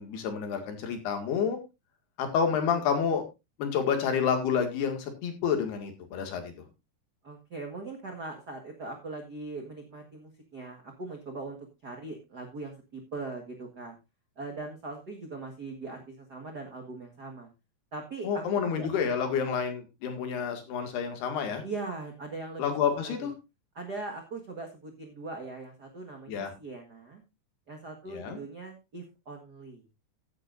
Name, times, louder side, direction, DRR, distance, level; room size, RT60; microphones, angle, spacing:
voice 1, 0.0-1.6 2.2-3.2 3.6-6.5 18.2-21.6 22.6-23.3 26.3-26.5 28.1-28.4, left 7 dB, 75° left, 5 dB, 4.1 m, -29 dB
voice 2, 7.2-11.6 11.8-13.9 14.4-17.5 17.9-18.9 21.6-22.6 23.0-23.3 23.7-27.2 27.7-29.8, right 3 dB, 70° right, 2 dB, 0.9 m, -40 dB
15.0 x 9.7 x 2.6 m, 0.25 s
omnidirectional pair, 4.7 m